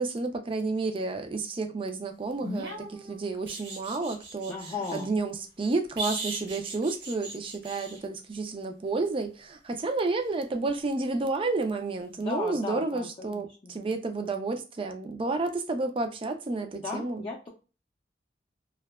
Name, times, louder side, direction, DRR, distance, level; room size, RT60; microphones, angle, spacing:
voice 1, 0.0-4.5 4.9-17.2, right 3 dB, 30° right, 0.4 m, -31 dB
sound 1, 2.4-5.1 6.0-8.0 10.7-10.8, right 2 dB, 90° right, 1.0 m, -38 dB
voice 2, 4.5-5.1 12.2-13.7 16.7-17.5, left 4 dB, 30° left, 0.5 m, -36 dB
2.7 x 2.2 x 2.2 m
head